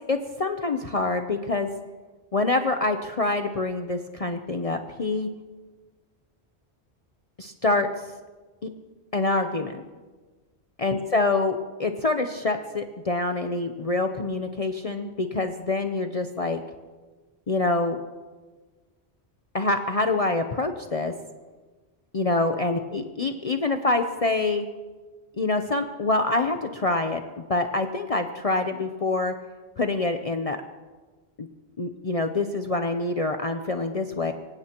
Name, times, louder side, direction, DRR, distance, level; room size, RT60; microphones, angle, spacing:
voice 1, 0.1-1.7 2.3-5.3 7.4-7.9 8.6-8.7 9.1-9.8 10.8-16.6 17.5-18.0 19.5-21.1 22.1-24.7 25.4-27.2 27.5-29.3 29.8-30.6 31.4-31.5 31.8-34.3, left 3 dB, 40° left, 6 dB, 0.7 m, -26 dB
25.5 x 17.0 x 3.0 m, 1.3 s
omnidirectional pair, 1.1 m